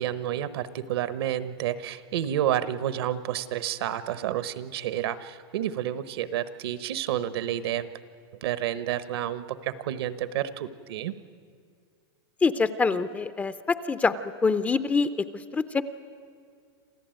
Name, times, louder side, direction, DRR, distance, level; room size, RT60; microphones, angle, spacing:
voice 1, 0.0-7.9 8.4-11.1, right 11 dB, 70° right, 14 dB, 1.1 m, -30 dB
voice 2, 12.4-14.1 14.4-15.8, left 4 dB, 10° left, 13 dB, 0.5 m, -25 dB
27.5 x 14.5 x 9.1 m, 2.1 s
supercardioid pair, 150°, 13 cm